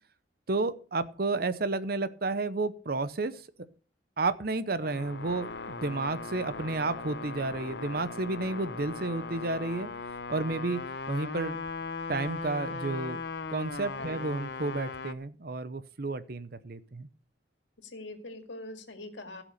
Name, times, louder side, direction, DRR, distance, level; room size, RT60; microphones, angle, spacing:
voice 1, 0.5-3.3 4.2-9.9 10.3-10.8 11.1-11.6 12.1-13.2 13.5-17.1, right 3 dB, 55° right, 14 dB, 0.8 m, -31 dB
sound 1, 4.8-15.1, left 4 dB, 65° left, 0.9 m, -38 dB
voice 2, 17.8-19.4, left 2 dB, 90° left, 7 dB, 2.2 m, -43 dB
15.5 x 6.0 x 6.6 m, 0.39 s
head